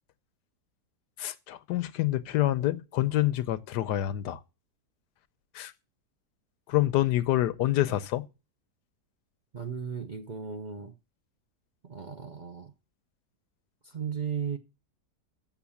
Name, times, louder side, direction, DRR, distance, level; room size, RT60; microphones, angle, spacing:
voice 1, 1.2-4.4 5.5-5.7 6.7-8.2, left 14 dB, 90° left, 1.3 m, -27 dB
voice 2, 9.5-10.9 11.8-12.7 13.8-14.6, right 6 dB, 40° right, 0.6 m, -35 dB
7.3 x 7.1 x 7.1 m
omnidirectional pair, 1.8 m